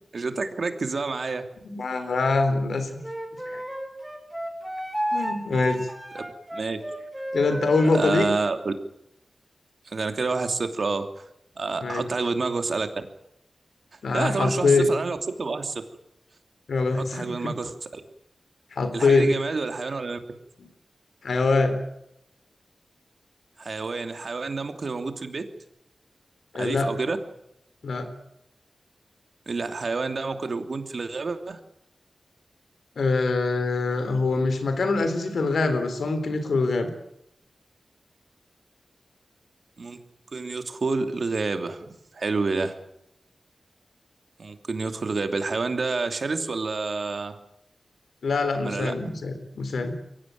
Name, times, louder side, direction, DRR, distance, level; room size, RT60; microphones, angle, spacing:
voice 1, 0.1-1.4 6.1-6.2 6.5-6.8 7.8-8.7 9.8-11.2 11.6-13.0 14.1-15.8 16.9-18.0 18.9-20.2 23.6-25.4 26.5-27.2 29.5-31.6 39.8-40.0 40.3-41.9 42.1-42.7 44.4-47.4 48.6-48.9, right 3 dB, 65° right, 7 dB, 2.8 m, -28 dB
voice 2, 1.6-2.9 3.5-3.6 5.1-5.8 7.3-8.3 11.8-12.0 14.0-14.9 16.7-17.5 18.7-19.3 20.6-20.7 21.2-21.7 26.5-26.9 27.8-28.1 33.0-36.9 48.2-50.0, left 3 dB, 85° left, 9 dB, 3.9 m, -24 dB
Wind instrument woodwind instrument, 3.0-8.1, equal, 10° right, 6.2 m, -32 dB
23.0 x 17.0 x 9.5 m, 0.79 s
wide cardioid pair, 65°, 0 cm